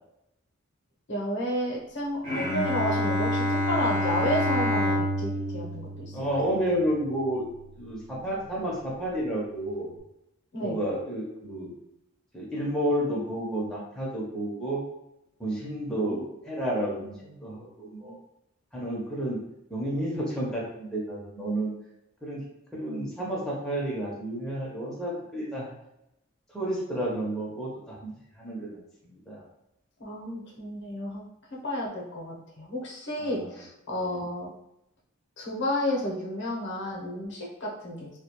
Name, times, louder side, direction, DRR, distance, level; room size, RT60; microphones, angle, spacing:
voice 1, 1.1-6.2 10.5-10.8 15.9-16.2 30.0-31.2 31.6-34.5 35.4-38.1, equal, 55° left, -2 dB, 0.7 m, -31 dB
Bowed string instrument, 2.2-7.5, left 1 dB, 30° right, 0.7 m, -28 dB
voice 2, 6.1-7.5 7.8-9.9 10.6-11.7 12.3-14.8 15.4-18.2 18.7-19.4 19.7-21.7 22.2-22.4 22.7-25.7 26.5-28.1 28.4-29.4 33.2-33.5 33.9-34.2, right 1 dB, 5° left, -6 dB, 0.5 m, -31 dB
2.3 x 2.1 x 2.8 m, 0.86 s
head